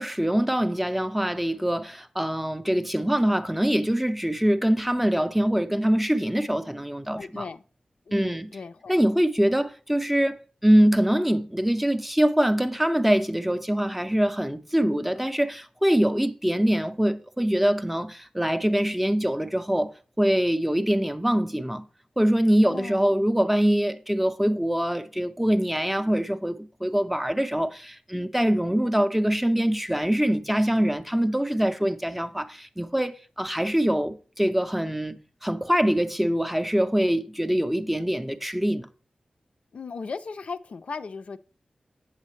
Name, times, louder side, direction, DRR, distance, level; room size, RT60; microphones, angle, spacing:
voice 1, 0.0-7.4 8.1-8.5 8.9-19.9 20.2-21.8 22.2-38.9, equal, 5° right, 0.5 m, -24 dB
voice 2, 7.2-7.6 8.1-9.0 22.6-23.0 39.7-41.4, left 4 dB, 65° left, 0.4 m, -37 dB
8.2 x 7.3 x 3.1 m
wide cardioid pair, 125°, 2 cm